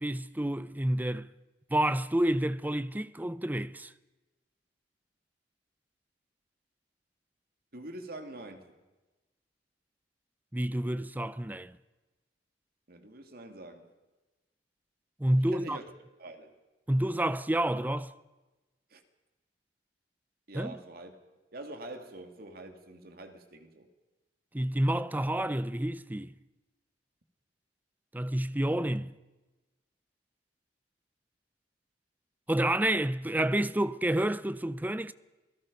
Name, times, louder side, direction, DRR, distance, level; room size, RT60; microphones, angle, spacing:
voice 1, 0.0-1.3 1.7-3.9 10.5-11.8 15.2-15.8 16.9-18.1 20.5-20.8 24.5-26.3 28.1-29.1 32.5-35.1, right 1 dB, 10° right, 0.6 m, -29 dB
voice 2, 7.7-8.7 12.9-13.9 15.5-15.8 16.2-16.6 18.9-19.0 20.5-21.2 21.5-23.9, right 2 dB, 60° right, 2.5 m, -45 dB
29.0 x 18.0 x 5.4 m
head